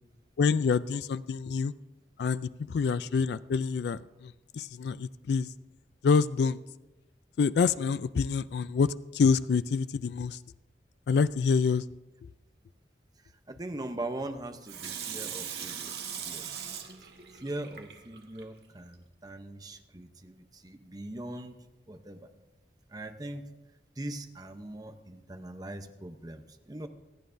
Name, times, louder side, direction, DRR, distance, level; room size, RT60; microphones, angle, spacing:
voice 1, 0.4-1.7 2.2-5.5 6.0-6.6 7.4-10.4 11.1-11.8, left 5 dB, 70° left, 16 dB, 0.3 m, -27 dB
voice 2, 13.5-16.0 16.2-16.7 17.3-21.6 21.9-22.3 22.9-23.5 24.0-26.9, right 1 dB, 20° right, 7 dB, 0.7 m, -41 dB
Water tap faucet / Sink (filling or washing), 14.7-18.4 18.9-19.0, right 8 dB, 65° right, 1.4 m, -40 dB
26.5 x 9.2 x 2.6 m, 1.0 s
head